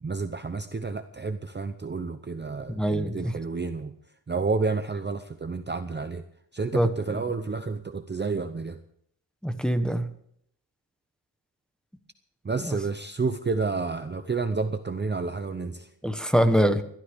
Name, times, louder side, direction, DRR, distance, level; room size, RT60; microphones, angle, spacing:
voice 1, 0.0-3.9 4.3-6.2 6.5-8.8 12.4-15.9, right 4 dB, 25° right, 8 dB, 0.7 m, -30 dB
voice 2, 2.7-3.3 6.7-6.9 9.4-10.1 12.6-12.8 16.0-16.8, equal, ahead, 7 dB, 1.1 m, -23 dB
21.5 x 13.0 x 3.6 m, 0.69 s
wide cardioid pair, 140°, 43 cm